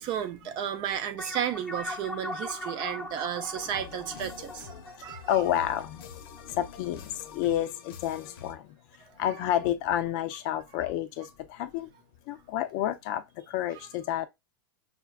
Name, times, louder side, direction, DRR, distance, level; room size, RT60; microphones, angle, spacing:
voice 1, 0.0-5.3 13.7-13.9, right 9 dB, 40° right, 0.5 m, -33 dB
sound 1, 1.2-6.0, left 1 dB, 5° left, 0.6 m, -39 dB
sound 2, 3.5-8.5, left 7 dB, 85° left, 0.7 m, -46 dB
voice 2, 5.0-6.0 6.6-8.6 9.2-11.9 12.3-14.3, left 11 dB, 50° left, 0.4 m, -30 dB
5.6 x 2.3 x 2.3 m
supercardioid pair, 135°, 12 cm